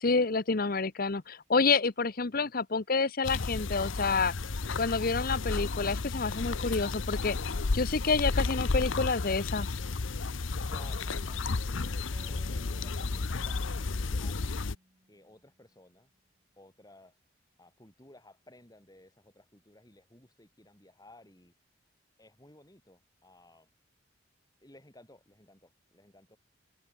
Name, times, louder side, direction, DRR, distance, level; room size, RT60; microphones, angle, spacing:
voice 1, 0.0-4.3 4.8-7.4 7.7-9.7, left 4 dB, 50° left, 0.9 m, -28 dB
sound 1, 3.2-14.8, left 3 dB, 80° left, 0.8 m, -32 dB
voice 2, 10.6-12.0 12.2-14.6 15.1-16.1 16.6-17.2 17.6-21.5 22.2-23.7 24.6-26.4, left 1 dB, 20° left, 4.8 m, -57 dB
sound 2, 12.1-15.6, right 1 dB, 30° right, 4.0 m, -57 dB
head